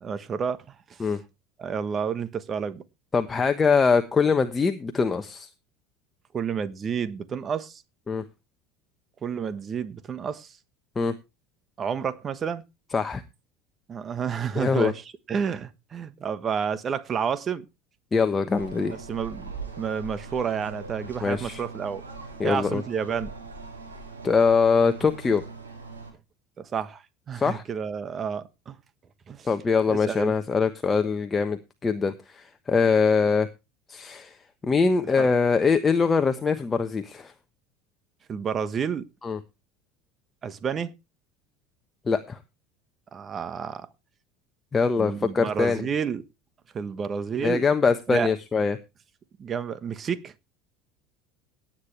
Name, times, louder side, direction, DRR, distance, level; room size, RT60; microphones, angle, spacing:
voice 1, 0.0-0.6 0.9-1.1 1.6-2.8 6.3-7.8 9.2-10.5 11.8-12.6 13.9-17.6 19.1-19.5 19.8-22.0 22.4-23.3 26.6-28.7 29.3-29.5 29.9-30.4 35.2-35.3 38.3-39.0 40.4-40.9 43.1-43.9 45.0-46.2 46.7-47.6 48.1-48.3 49.4-50.3, right 7 dB, 35° right, 1.3 m, -30 dB
voice 2, 3.1-5.5 8.1-8.2 11.0-11.1 12.9-13.2 14.5-14.9 18.1-19.0 21.2-21.6 22.4-22.8 24.2-25.4 27.3-27.6 29.4-33.5 33.9-34.4 34.6-37.3 39.2-39.4 42.1-42.4 44.7-45.8 47.4-48.8, left 5 dB, 25° left, 1.2 m, -23 dB
sound 1, 18.5-26.1, right 3 dB, 90° right, 5.7 m, -41 dB
17.5 x 8.9 x 3.3 m
hypercardioid pair, 75°, 0 cm